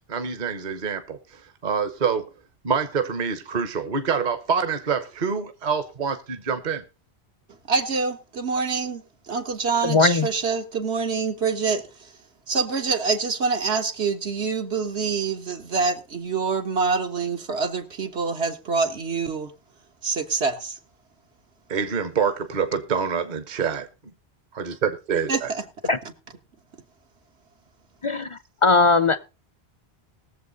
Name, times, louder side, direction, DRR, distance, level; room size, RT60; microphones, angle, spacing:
voice 1, 0.1-2.3 2.6-6.8 21.7-23.9 24.5-25.5, right 6 dB, 45° right, 1.0 m, -26 dB
voice 2, 7.7-11.8 12.5-19.5 20.0-20.8 25.3-25.6, right 4 dB, 75° right, 1.7 m, -26 dB
voice 3, 9.8-10.3 25.9-26.0 28.0-29.2, left 3 dB, 35° left, 0.6 m, -19 dB
20.0 x 7.3 x 4.0 m
omnidirectional pair, 1.1 m